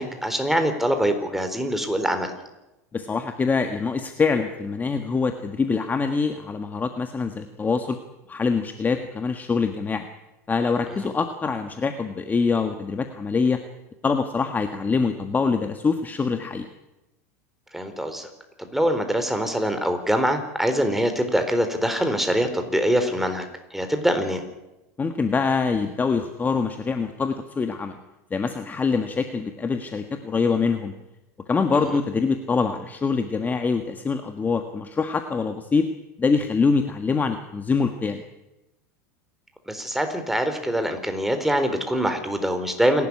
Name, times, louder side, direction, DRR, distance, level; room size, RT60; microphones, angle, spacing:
voice 1, 0.0-2.3 17.7-18.3 18.6-23.5 23.7-24.4 31.9-32.0 39.7-43.1, equal, 5° right, 7 dB, 4.1 m, -24 dB
voice 2, 2.9-8.0 8.3-10.1 10.5-13.6 14.0-16.7 25.0-28.0 28.3-30.9 31.5-35.9 36.2-38.2, left 4 dB, 20° left, 7 dB, 1.5 m, -24 dB
27.5 x 12.5 x 9.8 m, 0.97 s
hypercardioid pair, 105°, 9 cm